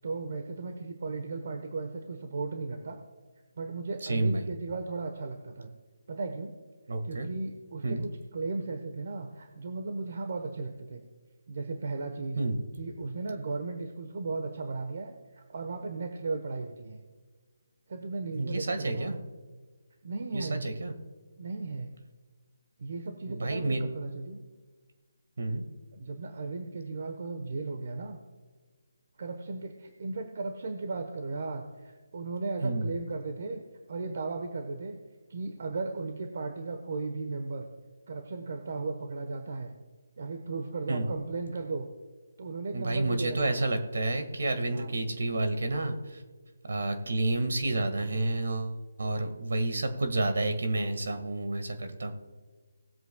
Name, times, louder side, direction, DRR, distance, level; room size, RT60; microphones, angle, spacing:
voice 1, 0.0-3.0 3.5-5.7 6.1-6.5 7.0-11.0 11.5-12.4 12.8-17.0 17.9-19.2 20.0-20.7 21.4-22.0 22.8-24.4 25.9-28.2 29.2-33.6 33.9-35.0 35.3-37.7 38.1-39.7 40.2-41.9 42.4-43.6 44.7-45.0, right 3 dB, 55° right, 5 dB, 1.1 m, -36 dB
voice 2, 4.0-4.5 6.9-7.3 7.8-8.1 12.4-12.6 18.4-19.2 20.3-20.9 23.3-23.8 25.4-25.6 32.6-32.9 40.9-41.1 42.7-46.2 46.7-48.7 49.0-52.1, right 2 dB, 70° right, 7 dB, 1.8 m, -30 dB
19.5 x 7.9 x 2.3 m, 1.4 s
figure-of-eight pair, 160°, 0 cm